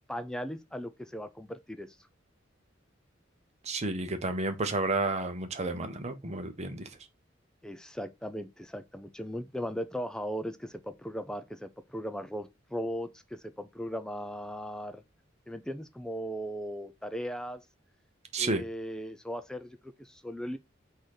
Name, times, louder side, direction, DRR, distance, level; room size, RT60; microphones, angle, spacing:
voice 1, 0.1-1.9 7.6-15.0 15.5-17.6 18.4-20.6, equal, 5° left, 0.4 m, -38 dB
voice 2, 3.6-6.9 18.3-18.6, right 2 dB, 35° right, 0.8 m, -31 dB
3.9 x 2.7 x 4.7 m
head